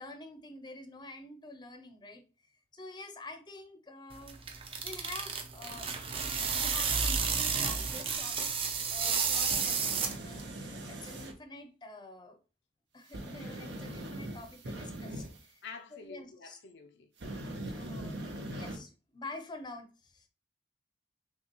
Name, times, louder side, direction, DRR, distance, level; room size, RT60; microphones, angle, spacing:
voice 1, 0.0-2.2 2.7-4.4 4.8-5.9 6.4-8.5 8.9-12.4 12.9-15.6 15.9-16.6 17.7-20.3, left 2 dB, 25° left, 0.6 m, -48 dB
sound 1, 4.1-10.5, right 5 dB, 30° right, 0.5 m, -31 dB
sound 2, 9.4-11.3 13.1-15.4 17.2-18.8, right 1 dB, 80° right, 0.8 m, -41 dB
voice 2, 15.6-17.1, left 4 dB, 75° left, 0.5 m, -48 dB
5.8 x 2.3 x 2.9 m
head